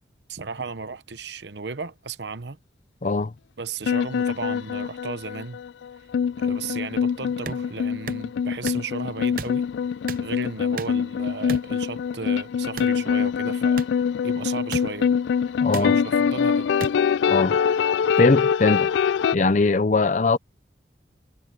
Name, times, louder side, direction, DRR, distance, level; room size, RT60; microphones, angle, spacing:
voice 1, 0.3-2.6 3.6-5.6 6.4-9.7 10.2-13.8 14.2-15.1 15.7-16.7, right 4 dB, 75° right, 1.0 m, -35 dB
voice 2, 3.0-3.3 15.6-16.0 17.3-17.6 18.2-18.9 19.3-20.4, left 3 dB, 45° left, 0.6 m, -20 dB
sound 1, 3.8-19.3, left 7 dB, 90° left, 0.3 m, -24 dB
sound 2, 7.5-7.6 8.1-8.2 8.6-8.8 9.4-9.6 10.1-10.3 10.8-11.0 11.5-11.7 12.8-13.0 13.8-13.9 14.7-14.8 15.7-15.9 16.8-16.9, right 4 dB, 50° right, 0.8 m, -32 dB
head